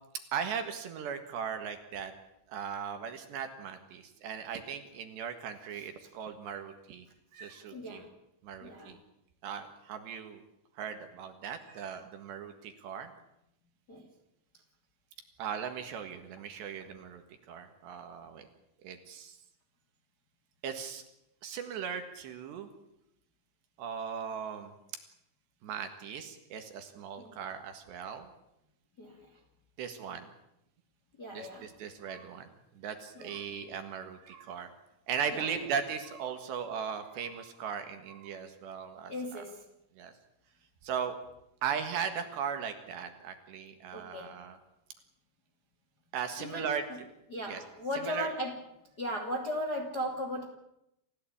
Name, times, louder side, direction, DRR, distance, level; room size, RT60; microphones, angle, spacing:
voice 1, 0.3-2.1 2.5-7.1 7.3-8.0 8.4-9.0 9.4-10.4 10.8-13.1 15.4-17.2 17.5-18.5 18.8-19.4 20.6-21.0 21.4-22.7 23.8-24.7 25.6-28.3 29.8-30.3 31.3-32.5 32.8-34.7 35.1-39.4 40.0-40.1 40.8-41.2 41.6-44.6 46.1-46.8 47.5-47.6 47.9-48.3, right 7 dB, 65° right, 7 dB, 3.5 m, -38 dB
voice 2, 7.7-8.1 8.6-9.0 13.9-14.1 27.2-27.3 29.0-29.2 31.2-31.7 33.2-33.4 35.3-35.6 39.1-39.6 43.9-44.3 46.4-47.0 47.3-48.6 49.0-50.5, equal, 30° left, 3 dB, 2.1 m, -37 dB
29.0 x 15.5 x 8.7 m, 0.83 s
omnidirectional pair, 5.9 m